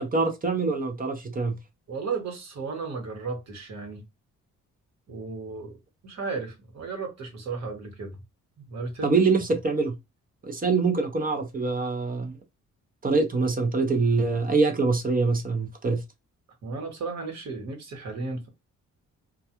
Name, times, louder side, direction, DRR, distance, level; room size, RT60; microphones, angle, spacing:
voice 1, 0.0-1.6 9.0-9.9 10.4-12.4 13.0-16.0, right 4 dB, 30° right, 0.7 m, -24 dB
voice 2, 1.9-4.0 5.1-5.7 6.0-8.2 8.6-9.1 16.6-18.5, right 4 dB, 60° right, 1.1 m, -34 dB
2.3 x 2.3 x 2.8 m
cardioid pair, 85°, 31 cm